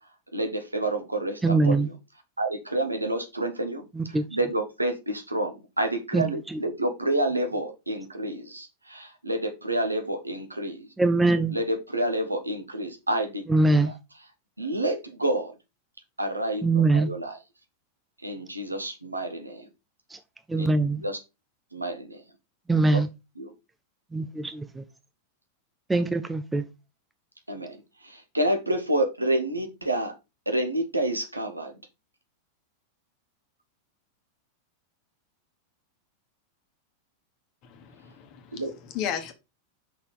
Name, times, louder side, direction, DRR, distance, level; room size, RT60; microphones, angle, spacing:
voice 1, 0.3-1.8 2.4-3.8 4.3-10.9 11.5-13.9 14.6-15.5 16.2-16.7 16.9-17.3 18.2-19.6 20.6-20.7 20.9-21.2 21.7-22.2 23.4-23.5 27.5-27.8 28.0-30.1 30.5-31.7 38.6-38.7, right 1 dB, 85° right, 1.3 m, -29 dB
voice 2, 1.4-1.9 3.9-4.2 6.1-6.6 11.0-11.5 13.5-13.9 16.6-17.1 20.1-20.2 20.5-21.0 22.7-23.1 24.1-24.8 25.9-26.6, right 3 dB, 10° right, 0.6 m, -23 dB
voice 3, 37.6-39.3, left 9 dB, 40° left, 1.4 m, -35 dB
5.8 x 4.2 x 4.9 m
figure-of-eight pair, 90°, 0 cm